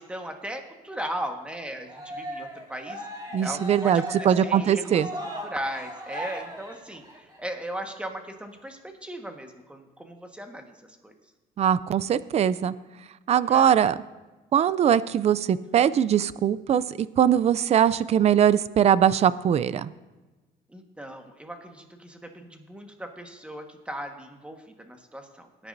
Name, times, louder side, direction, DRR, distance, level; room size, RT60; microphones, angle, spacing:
voice 1, 0.0-3.0 3.4-5.1 5.4-10.7 11.0-11.1 13.4-13.7 20.7-25.7, right 1 dB, 5° right, 4 dB, 1.5 m, -37 dB
Cheering, 1.9-7.4, right 1 dB, 25° right, 2.2 m, -37 dB
voice 2, 3.3-5.1 11.6-12.7 13.3-14.0 14.5-19.9, right 9 dB, 40° right, 17 dB, 0.4 m, -21 dB
19.0 x 9.9 x 2.7 m, 1.2 s
cardioid pair, 110°, 17 cm